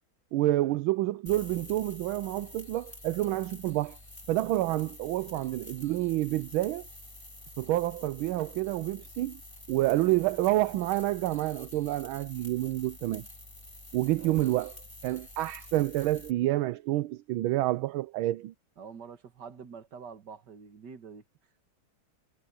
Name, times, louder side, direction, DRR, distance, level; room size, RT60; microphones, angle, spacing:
voice 1, 0.3-4.0 4.3-6.8 7.6-9.4 9.7-13.3 13.9-14.7 15.0-18.5, right 16 dB, 85° right, 1.4 m, -28 dB
sound 1, 1.3-16.3, left 1 dB, 15° left, 2.9 m, -48 dB
voice 2, 14.2-14.5 18.8-21.2, right 6 dB, 55° right, 2.3 m, -46 dB
omnidirectional pair, 2.2 m